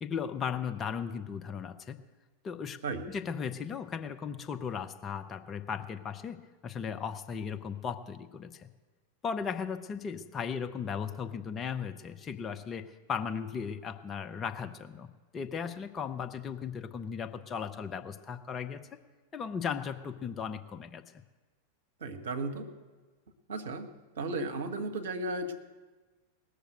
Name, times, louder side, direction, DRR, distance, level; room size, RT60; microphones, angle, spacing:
voice 1, 0.0-2.0 2.4-2.8 3.1-8.7 9.2-15.1 15.3-18.8 19.3-21.0, left 6 dB, 25° left, 6 dB, 0.8 m, -36 dB
voice 2, 22.0-22.7 23.5-23.9 24.1-25.5, right 2 dB, 60° right, 6 dB, 1.4 m, -34 dB
18.5 x 6.7 x 9.0 m, 1.3 s
figure-of-eight pair, 90°, 0 cm